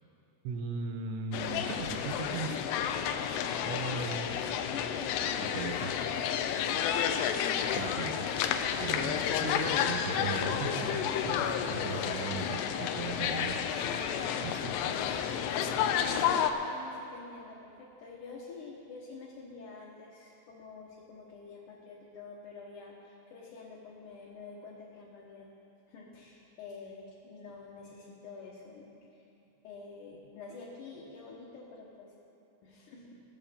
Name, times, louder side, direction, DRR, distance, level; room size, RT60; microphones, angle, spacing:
voice 1, 0.4-2.7 3.6-4.3 5.5-5.9 7.7-8.3 8.8-13.6 14.4-15.8, right 5 dB, 85° right, 6 dB, 3.0 m, -38 dB
sound 1, 1.3-16.5, left 8 dB, 80° left, 2.7 m, -31 dB
voice 2, 3.6-6.8 16.6-25.5 25.9-29.3 29.6-32.1 32.6-33.2, left 4 dB, 65° left, -5 dB, 2.2 m, -48 dB
20.5 x 7.2 x 5.2 m, 2.8 s
omnidirectional pair, 5.0 m